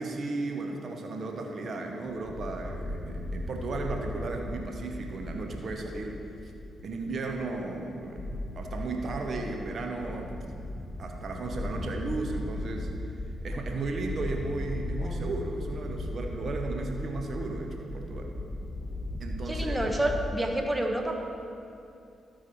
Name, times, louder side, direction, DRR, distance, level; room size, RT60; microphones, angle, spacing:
voice 1, 0.0-6.2 6.8-10.3 11.0-12.9 13.4-18.3 19.2-19.8, right 3 dB, 60° right, 3 dB, 1.0 m, -35 dB
sound 1, 2.2-20.3, left 1 dB, 45° left, 0.8 m, -37 dB
voice 2, 15.0-15.3 19.5-21.2, right 1 dB, 15° right, 3 dB, 1.2 m, -29 dB
12.5 x 4.7 x 4.7 m, 2.6 s
hypercardioid pair, 45°, 0 cm